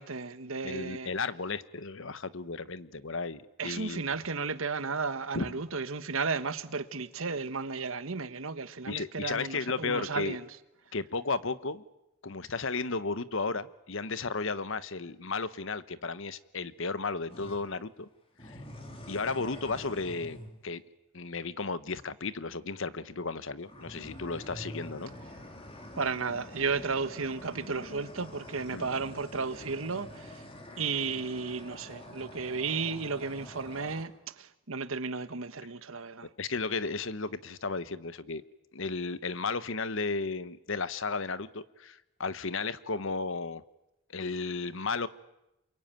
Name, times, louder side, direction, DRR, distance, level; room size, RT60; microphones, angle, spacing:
voice 1, 0.0-1.1 3.6-10.4 26.0-30.4 30.8-34.1 34.4-36.3, right 4 dB, 75° right, 1.4 m, -34 dB
voice 2, 0.6-4.0 5.3-5.6 8.9-10.4 10.9-11.8 12.2-18.1 18.4-18.6 19.1-20.8 21.1-25.1 28.7-28.9 36.4-38.4 38.7-43.6 44.1-45.1, left 4 dB, 65° left, 1.1 m, -34 dB
sound 1, 17.3-17.6 18.4-20.6 23.6-34.0, left 1 dB, 25° left, 3.2 m, -46 dB
28.5 x 23.0 x 9.2 m
head